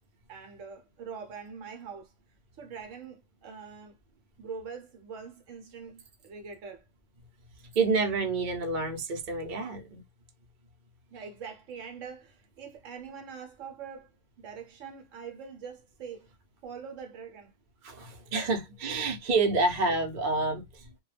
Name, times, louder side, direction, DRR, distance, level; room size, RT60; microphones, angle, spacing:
voice 1, 0.3-2.1 2.6-4.0 4.4-6.8 11.1-16.3 16.6-17.5, right 6 dB, 70° right, 1.0 m, -43 dB
voice 2, 7.7-10.0 17.8-20.9, right 3 dB, 45° right, 0.7 m, -28 dB
2.2 x 2.2 x 3.2 m
omnidirectional pair, 1.4 m